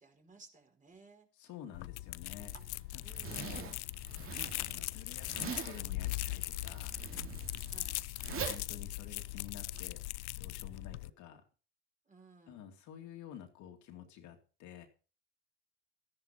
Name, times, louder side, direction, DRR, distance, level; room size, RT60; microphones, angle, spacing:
voice 1, 0.0-1.3 3.0-3.7 7.6-8.1 12.0-12.7, right 3 dB, 25° right, 3 dB, 4.9 m, -59 dB
voice 2, 1.4-2.5 2.9-3.7 4.4-6.9 8.3-10.0 10.4-11.4 12.5-14.9, left 9 dB, 60° left, 5 dB, 2.5 m, -50 dB
sound 1, 1.7-11.1, left 19 dB, 85° left, 0.5 m, -40 dB
Zipper (clothing), 2.4-9.8, right 7 dB, 40° right, 2.7 m, -45 dB
14.0 x 10.5 x 4.4 m, 0.36 s
supercardioid pair, 90°, 34 cm